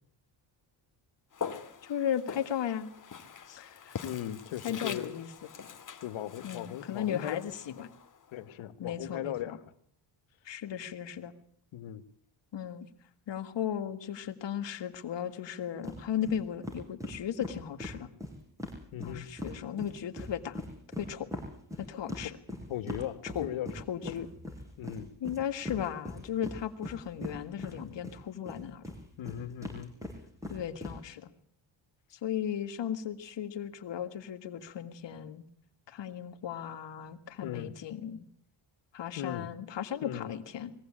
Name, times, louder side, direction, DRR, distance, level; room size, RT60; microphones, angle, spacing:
Walk footsteps, 1.3-8.5, left 6 dB, 40° left, 1.9 m, -43 dB
voice 1, 1.8-2.9 3.5-3.9 4.6-5.5 6.4-7.9 8.8-9.6 10.5-11.3 12.5-12.9 13.3-18.1 19.0-20.6 21.0-21.3 21.8-22.4 23.2-23.5 23.7-24.3 25.2-28.8 30.5-31.3 32.1-35.4 35.9-38.2 38.9-40.7, left 9 dB, 65° left, 2.0 m, -36 dB
voice 2, 4.0-5.1 6.0-7.4 8.3-9.5 11.7-12.0 18.9-19.3 22.7-23.7 24.0-24.1 24.8-25.1 29.2-29.9 37.4-37.7 39.2-39.5 40.0-40.3, left 11 dB, 85° left, 1.4 m, -38 dB
sound 1, 15.8-16.0 16.2-16.4 16.6-19.5 19.8-28.2 28.5-30.9, left 1 dB, 5° right, 7.4 m, -40 dB
21.5 x 16.5 x 8.8 m
cardioid pair, 110°, 47 cm